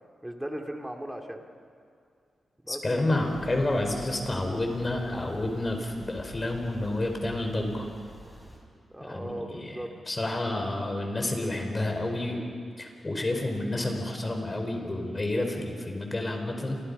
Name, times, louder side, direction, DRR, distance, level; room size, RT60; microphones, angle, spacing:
voice 1, 0.2-1.4 2.6-2.8 8.9-9.9, right 1 dB, 10° right, 2 dB, 2.7 m, -37 dB
voice 2, 2.7-7.9 9.1-9.8 10.1-12.4 12.8-16.8, left 2 dB, 30° left, 3 dB, 4.8 m, -29 dB
sound 1, 3.1-8.6, equal, 5° left, 6.9 m, -48 dB
30.0 x 25.5 x 5.6 m, 2.3 s
cardioid pair, 85°, 0 cm